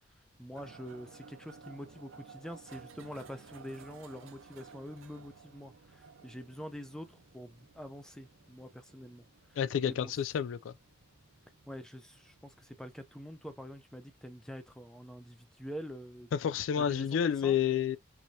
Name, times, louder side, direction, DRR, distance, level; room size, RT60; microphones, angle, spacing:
voice 1, 0.4-9.2 9.5-10.2 11.7-16.3 16.8-17.6, equal, 5° left, 0.5 m, -46 dB
sound 1, 0.6-13.8, right 5 dB, 85° right, 0.6 m, -56 dB
voice 2, 9.6-10.7 16.3-18.0, left 8 dB, 75° left, 0.3 m, -29 dB
4.8 x 2.6 x 2.7 m
head